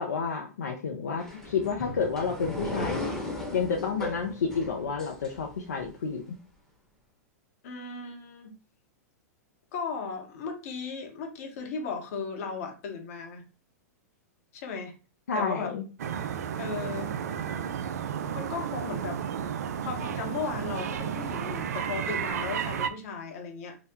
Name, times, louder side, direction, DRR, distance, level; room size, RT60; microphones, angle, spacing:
voice 1, 0.0-3.0 3.5-6.2 15.3-15.8, left 5 dB, 80° left, 1 dB, 0.6 m, -30 dB
sound 1, 1.2-5.9, left 2 dB, 5° left, 0.9 m, -36 dB
voice 2, 7.6-8.5 9.7-13.4 14.5-14.9 15.3-15.7 16.6-17.1 17.7-17.9 18.3-19.2 19.8-23.8, left 5 dB, 60° left, 4 dB, 0.9 m, -36 dB
sound 2, 16.0-22.9, right 8 dB, 75° right, 0.3 m, -32 dB
2.9 x 2.0 x 3.5 m, 0.34 s
hypercardioid pair, 110°, 9 cm